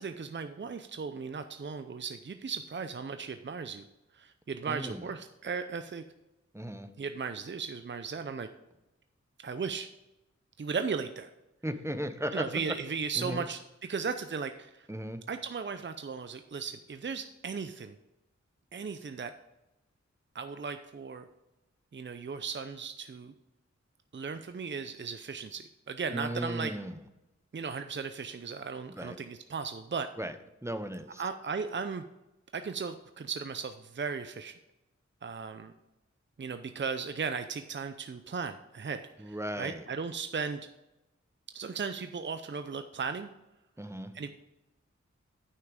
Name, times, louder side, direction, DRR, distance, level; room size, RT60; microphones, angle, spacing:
voice 1, 0.0-3.9 4.1-6.0 7.0-8.5 9.4-9.9 10.6-11.3 12.3-14.9 15.3-18.0 18.7-19.3 20.3-21.3 21.9-23.3 24.1-26.7 27.5-30.1 31.2-32.0 32.5-34.5 35.2-35.7 36.4-40.6 41.5-43.3 44.1-44.3, right 5 dB, 40° right, 9 dB, 0.6 m, -36 dB
voice 2, 4.7-5.1 6.5-6.9 11.6-12.8 13.2-13.4 14.9-15.2 26.1-27.0 29.0-29.2 30.2-30.4 30.6-31.2 39.2-39.9 43.8-44.1, right 1 dB, 10° right, 9 dB, 0.9 m, -36 dB
9.6 x 5.7 x 5.1 m, 0.96 s
wide cardioid pair, 45°, 29 cm